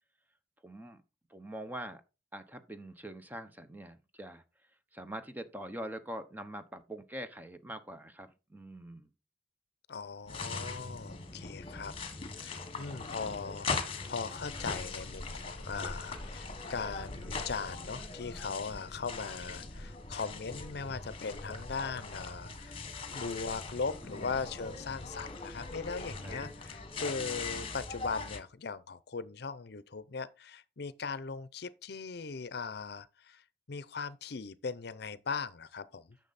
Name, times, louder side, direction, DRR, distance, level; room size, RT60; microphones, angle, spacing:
voice 1, 0.6-1.0 1.3-2.0 2.3-4.4 4.9-9.1 24.0-24.3 24.6-24.8 26.2-26.5, right 1 dB, 10° right, 0.9 m, -44 dB
voice 2, 9.9-11.9 12.3-22.8 23.1-33.4 33.7-36.2, left 5 dB, 65° left, 0.6 m, -39 dB
sound 1, 10.3-28.4, left 4 dB, 30° left, 1.4 m, -41 dB
10.0 x 6.6 x 4.1 m
head